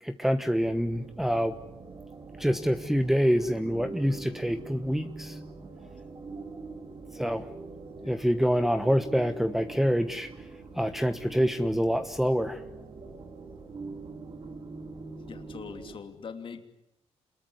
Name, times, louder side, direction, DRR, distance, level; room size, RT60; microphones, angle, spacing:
voice 1, 0.0-1.5 2.4-5.4 7.1-7.5 8.0-10.3 10.7-12.6, equal, 5° right, 7 dB, 1.2 m, -26 dB
sound 1, 0.6-16.0, right 3 dB, 45° right, 3.9 m, -44 dB
voice 2, 7.9-8.2 15.3-16.7, left 6 dB, 50° left, 6 dB, 2.9 m, -43 dB
27.0 x 21.5 x 9.7 m, 0.85 s
cardioid pair, 100°, 11 cm